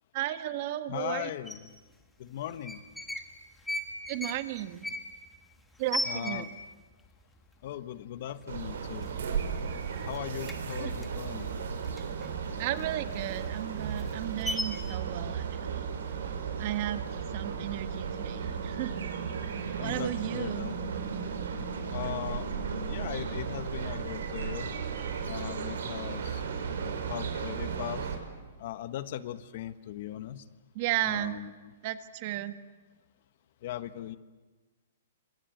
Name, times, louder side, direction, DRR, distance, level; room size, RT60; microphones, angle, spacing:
voice 1, 0.1-1.3 4.1-4.8 5.8-6.4 10.8-10.9 12.6-15.8 16.6-17.0 17.3-19.0 19.8-20.7 30.7-31.4 31.8-32.5, right 14 dB, 40° right, 11 dB, 1.5 m, -34 dB
voice 2, 0.9-1.7 2.2-2.8 6.1-6.5 7.6-9.1 10.0-11.5 19.8-20.7 21.9-22.5 22.9-24.7 25.2-26.4 26.8-28.1 28.6-30.4 31.0-31.5 33.6-34.2, left 12 dB, 45° left, 13 dB, 1.2 m, -38 dB
sound 1, 1.5-1.6 2.5-3.3 3.6-6.8 7.1-7.2 7.5-8.0 8.4-8.6 8.9-9.7 9.9-12.3 12.7-15.0, left 1 dB, 5° left, 1.6 m, -37 dB
sound 2, 8.5-28.2, right 6 dB, 75° right, 5.8 m, -35 dB
28.5 x 26.0 x 7.9 m, 1.3 s
hypercardioid pair, 165°, 0 cm